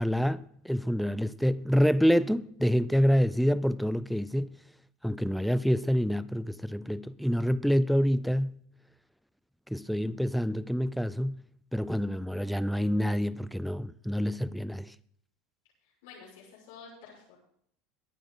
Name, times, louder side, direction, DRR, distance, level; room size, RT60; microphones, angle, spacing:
voice 1, 0.0-4.6 5.0-8.6 9.7-11.4 11.7-14.9, equal, ahead, 0.5 m, -27 dB
voice 2, 15.8-17.4, left 5 dB, 80° left, 6.0 m, -50 dB
22.0 x 9.2 x 3.9 m
supercardioid pair, 125°, 0 cm